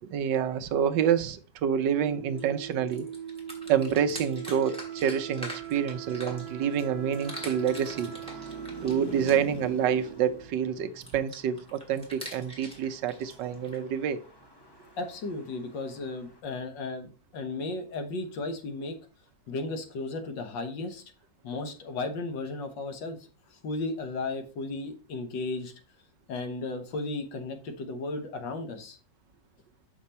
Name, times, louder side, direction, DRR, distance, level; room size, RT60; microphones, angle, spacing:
voice 1, 0.0-3.1 3.7-8.1 8.8-14.2, right 8 dB, 75° right, 1.3 m, -27 dB
Wind instrument woodwind instrument, 1.9-10.6, right 10 dB, 25° right, 1.2 m, -41 dB
sound 1, 2.4-2.5 2.7-6.9 7.1-9.6 11.0-13.8, equal, 5° left, 2.1 m, -44 dB
Traffic noise roadway noise, 2.7-16.4, equal, 25° left, 0.6 m, -49 dB
voice 2, 15.0-19.0 19.5-21.0 21.4-23.2 23.5-25.7 26.3-29.0, left 3 dB, 80° left, 1.9 m, -35 dB
6.8 x 5.7 x 4.2 m
omnidirectional pair, 2.0 m